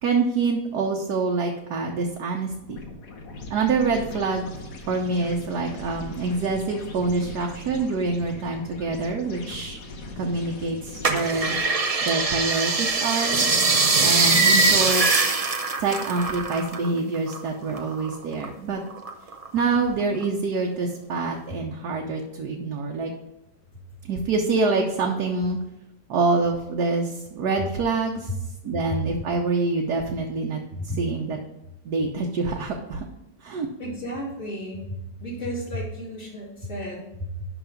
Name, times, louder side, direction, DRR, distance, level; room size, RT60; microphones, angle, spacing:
voice 1, 0.0-2.8 3.5-4.5 4.9-9.8 10.2-11.6 12.0-13.5 14.0-15.0 15.8-18.8 19.5-23.1 24.1-25.6 26.1-28.3 28.6-31.4 31.8-33.1 33.4-33.7, right 3 dB, 70° right, 0 dB, 1.4 m, -26 dB
sound 1, 2.6-12.1, left 2 dB, 55° left, 1.5 m, -40 dB
sound 2, 11.0-16.9 17.2-18.5 18.9-19.7 20.2-20.3, right 3 dB, 50° right, 0.4 m, -22 dB
voice 2, 33.8-34.9 35.2-37.5, equal, 40° left, -5 dB, 3.1 m, -33 dB
11.0 x 3.7 x 5.1 m, 0.92 s
omnidirectional pair, 1.8 m